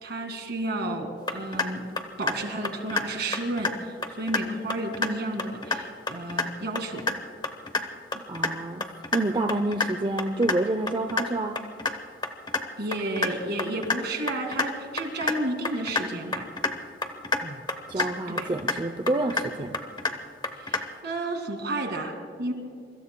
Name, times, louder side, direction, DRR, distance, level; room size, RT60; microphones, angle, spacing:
voice 1, 0.0-1.9 2.2-3.8 4.2-7.1 12.8-16.5 18.0-18.5 20.5-22.5, right 1 dB, 60° right, 5 dB, 2.2 m, -32 dB
sound 1, 1.3-1.7 2.0-2.4 2.6-3.0 3.3-3.7 4.0-4.4 4.7-5.1 5.4-5.8 6.1-6.4 6.7-7.1 7.4-7.8 8.1-8.5 8.8-9.2 9.5-9.9 10.2-10.6 10.9-11.2 11.5-11.9 12.2-12.6 12.9-13.3 13.6-14.0 14.3-14.7 15.0-15.3 15.6-16.0 16.3-16.7 17.0-17.4 17.7-18.1 18.4-18.7 19.1-19.5 19.7-20.1 20.4-20.8, left 3 dB, 25° left, 0.9 m, -27 dB
voice 2, 8.1-8.8 9.1-11.6 17.4-17.6 17.9-19.9, right 2 dB, 25° right, 6 dB, 0.5 m, -28 dB
26.5 x 24.5 x 2.2 m, 2.3 s
head